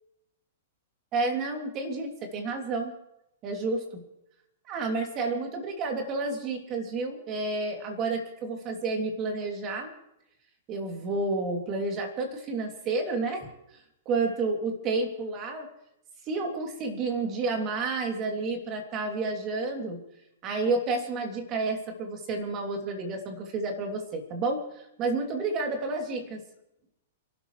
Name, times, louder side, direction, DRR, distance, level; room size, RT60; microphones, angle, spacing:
voice 1, 1.1-2.9 3.4-4.0 4.7-9.9 10.7-13.5 14.1-15.7 16.3-20.0 20.4-26.4, right 3 dB, 30° right, 3 dB, 2.8 m, -30 dB
29.0 x 12.5 x 3.2 m, 0.84 s
hypercardioid pair, 145°, 0 cm